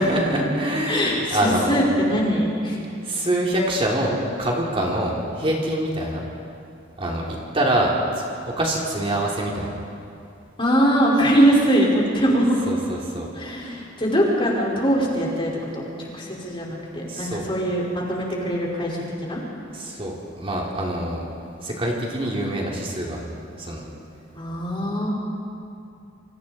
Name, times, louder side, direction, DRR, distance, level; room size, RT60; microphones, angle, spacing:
voice 1, 0.0-1.9 3.0-6.2 7.0-7.3 7.5-9.7 12.7-13.3 17.1-17.5 19.7-21.3 21.6-23.8, right 1 dB, 30° right, -3 dB, 3.0 m, -25 dB
voice 2, 0.9-2.8 10.6-12.6 13.3-19.4 24.3-25.1, equal, 30° left, -4 dB, 4.9 m, -22 dB
28.0 x 25.5 x 4.3 m, 2.6 s
head